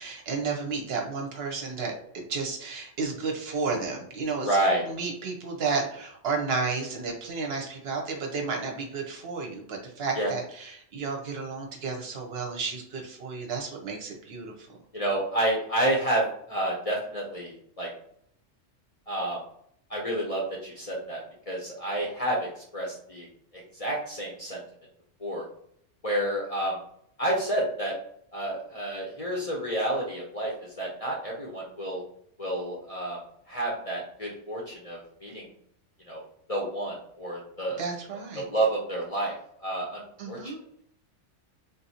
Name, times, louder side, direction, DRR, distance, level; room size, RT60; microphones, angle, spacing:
voice 1, 0.0-4.6 4.9-14.7 37.8-38.4 40.2-40.6, right 4 dB, 60° right, 1 dB, 0.8 m, -32 dB
voice 2, 4.4-4.9 10.1-10.3 14.9-17.9 19.1-19.4 19.9-23.3 23.5-24.6 25.2-25.4 26.0-26.8 27.2-27.9 28.3-32.0 32.4-33.2 33.5-35.5 36.1-36.2 36.5-37.8 38.4-39.3 39.6-40.5, right 1 dB, 40° left, -3 dB, 0.5 m, -29 dB
3.6 x 2.5 x 2.7 m, 0.68 s
omnidirectional pair, 1.3 m